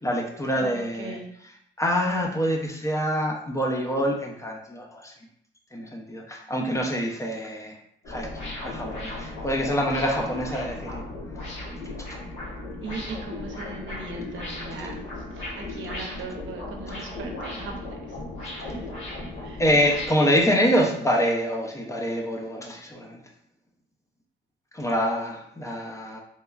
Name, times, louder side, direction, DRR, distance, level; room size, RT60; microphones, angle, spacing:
voice 1, 0.0-1.2 1.8-5.1 5.7-7.8 8.1-11.0 19.6-23.2 24.7-26.2, equal, 15° left, 0 dB, 0.5 m, -26 dB
voice 2, 0.6-1.3 8.4-8.5 12.8-18.3 18.6-18.9 19.4-19.6, right 3 dB, 75° right, 2 dB, 0.6 m, -39 dB
sound 1, 8.0-20.1, left 2 dB, 85° left, 1.1 m, -36 dB
2.9 x 2.3 x 2.3 m, 0.71 s
cardioid pair, 90°, 20 cm